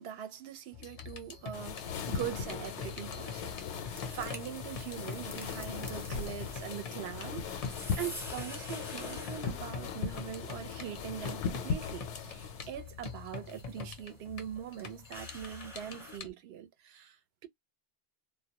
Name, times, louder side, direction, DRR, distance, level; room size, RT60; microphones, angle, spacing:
voice 1, 0.0-17.2, right 10 dB, 70° right, 0.8 m, -42 dB
sound 1, 0.7-16.3, left 5 dB, 45° left, 0.5 m, -45 dB
sound 2, 1.5-12.7, left 6 dB, 80° left, 0.9 m, -39 dB
sound 3, 3.2-16.2, equal, 5° right, 0.5 m, -51 dB
2.2 x 2.1 x 2.8 m
omnidirectional pair, 1.2 m